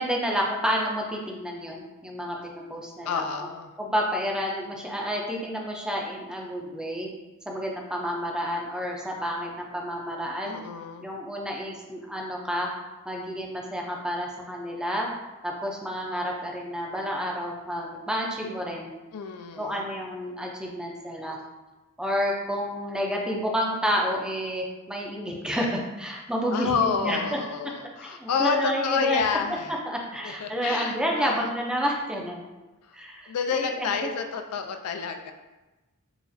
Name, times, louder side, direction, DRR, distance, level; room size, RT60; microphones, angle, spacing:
voice 1, 0.0-3.2 3.8-7.1 7.5-10.6 11.0-12.7 13.1-15.1 15.4-18.9 19.6-21.4 22.0-26.8 27.0-27.2 28.0-29.2 29.5-29.6 29.9-32.5 32.9-34.1, equal, 5° right, -1 dB, 0.4 m, -30 dB
voice 2, 3.1-3.7 10.4-11.1 19.1-19.9 26.5-29.7 30.2-31.5 32.9-33.0 33.3-35.3, left 6 dB, 80° left, 6 dB, 0.4 m, -29 dB
4.9 x 2.4 x 2.6 m, 1.1 s
head